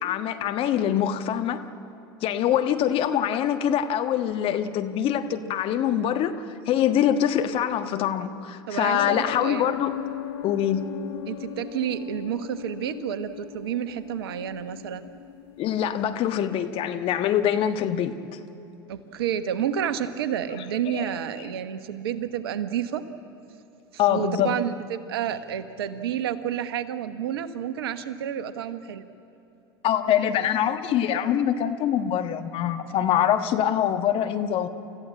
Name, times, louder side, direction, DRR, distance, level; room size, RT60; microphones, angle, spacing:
voice 1, 0.0-1.6 2.2-9.9 10.4-10.9 15.6-18.2 24.0-24.6 29.8-34.7, left 10 dB, 45° left, 8 dB, 1.4 m, -24 dB
voice 2, 8.7-9.7 11.3-15.1 18.9-23.0 24.1-29.1, right 9 dB, 70° right, 12 dB, 1.2 m, -30 dB
sound 1, 9.0-16.4, left 12 dB, 65° left, 2.0 m, -38 dB
29.5 x 14.5 x 8.7 m, 3.0 s
hypercardioid pair, 80°, 13 cm